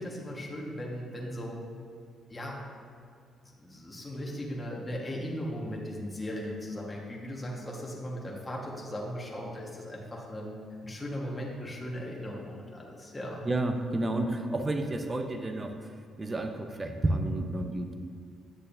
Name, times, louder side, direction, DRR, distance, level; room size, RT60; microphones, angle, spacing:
voice 1, 0.0-1.6 2.3-2.6 3.6-10.5 10.8-13.5, equal, 15° left, -3 dB, 1.4 m, -37 dB
voice 2, 13.4-15.8 16.2-17.9, right 2 dB, 25° right, 5 dB, 0.7 m, -30 dB
8.7 x 6.6 x 2.6 m, 2.3 s
cardioid pair, 90°, 0 cm